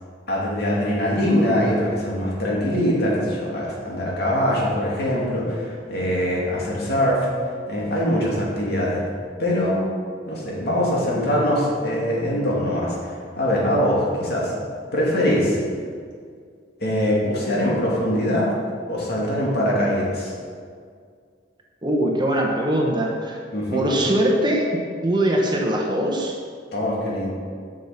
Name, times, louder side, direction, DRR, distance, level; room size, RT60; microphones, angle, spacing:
voice 1, 0.3-7.3 7.7-9.0 9.4-9.8 10.3-14.5 14.9-15.6 16.8-18.5 18.9-20.3 23.5-23.8 26.7-27.3, equal, 60° left, -5 dB, 2.4 m, -22 dB
voice 2, 21.8-23.4 23.7-26.4, right 1 dB, 25° right, 0 dB, 1.0 m, -22 dB
7.6 x 6.5 x 5.7 m, 2.1 s
head